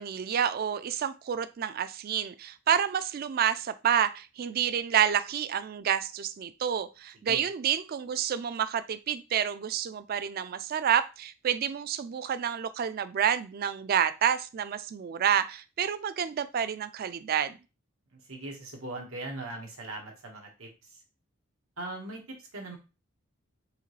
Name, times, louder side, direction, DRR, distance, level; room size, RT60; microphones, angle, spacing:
voice 1, 0.0-17.6, right 8 dB, 45° right, 13 dB, 0.3 m, -29 dB
voice 2, 18.1-21.0 21.8-22.8, right 2 dB, 85° right, 1 dB, 1.4 m, -40 dB
4.9 x 2.9 x 3.1 m, 0.29 s
head